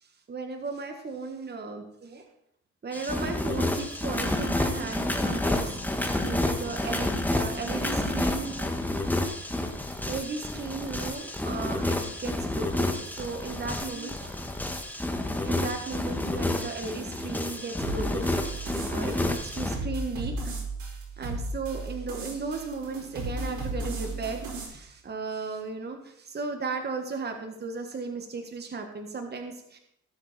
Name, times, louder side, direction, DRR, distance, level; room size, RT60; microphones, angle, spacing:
voice 1, 0.0-2.3 2.8-9.4 9.8-14.4 14.8-14.9 15.4-18.6 18.9-20.5 21.2-29.8, right 4 dB, 35° right, 4 dB, 1.5 m, -36 dB
sound 1, 2.9-19.8, left 1 dB, 5° left, 1.6 m, -30 dB
sound 2, 17.8-24.6, right 2 dB, 70° right, 5.0 m, -35 dB
17.5 x 7.1 x 4.3 m, 0.78 s
cardioid pair, 90°, 30 cm